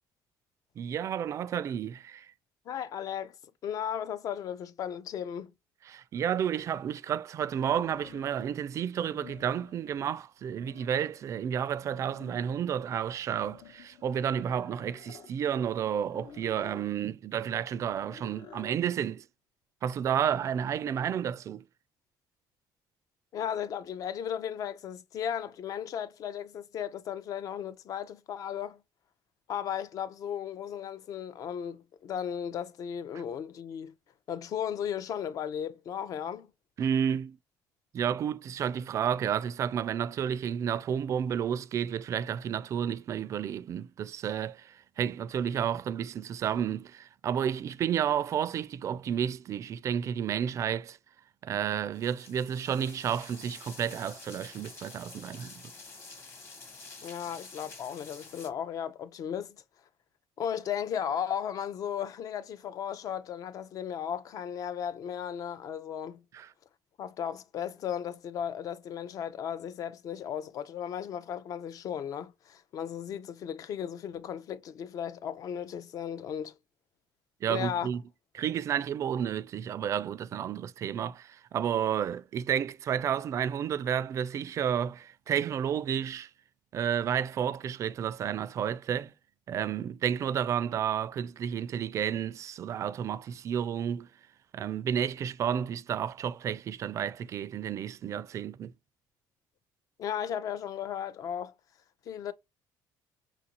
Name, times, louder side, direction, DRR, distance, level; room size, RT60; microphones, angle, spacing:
voice 1, 0.8-2.3 5.9-19.3 19.8-21.6 36.8-37.4 37.9-51.0 51.4-55.6 66.3-66.5 77.4-78.0 78.3-86.3 86.7-89.1 89.5-94.1 94.5-98.7, right 8 dB, 40° right, 0.3 m, -31 dB
voice 2, 2.7-3.4 3.6-5.5 23.3-28.8 29.5-33.9 34.3-36.5 57.0-59.6 60.4-66.2 67.0-76.6 77.5-77.9 100.0-101.5 102.1-102.3, left 9 dB, 50° left, 0.4 m, -35 dB
sound 1, 6.2-6.3 7.6-8.5 9.0-10.0 10.4-11.3 11.7-12.6 13.2-15.3 16.1-16.9 17.7-18.8 20.0-20.7, left 7 dB, 70° left, 0.9 m, -52 dB
sound 2, 51.9-58.5, left 3 dB, 30° left, 1.0 m, -49 dB
5.9 x 2.5 x 2.9 m
cardioid pair, 145°, 8 cm